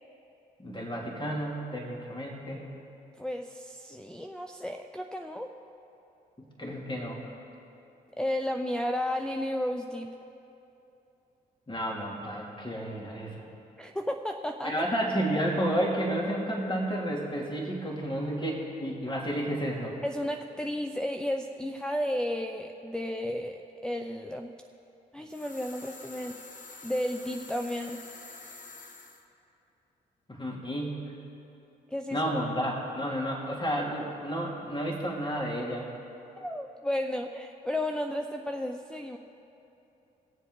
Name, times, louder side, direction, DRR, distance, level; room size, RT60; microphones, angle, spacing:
voice 1, 0.6-2.6 6.4-7.3 11.7-13.5 14.6-20.0 30.3-31.1 32.1-35.9, equal, 25° left, -2 dB, 2.6 m, -31 dB
voice 2, 3.2-5.5 8.2-10.1 13.8-14.7 20.0-24.5 25.1-26.4 26.8-28.0 31.9-32.2 36.4-39.2, left 1 dB, 5° left, 2 dB, 0.6 m, -33 dB
sound 1, 25.3-29.2, left 3 dB, 45° left, 1.3 m, -47 dB
20.0 x 7.5 x 3.8 m, 2.9 s
supercardioid pair, 50°, 18 cm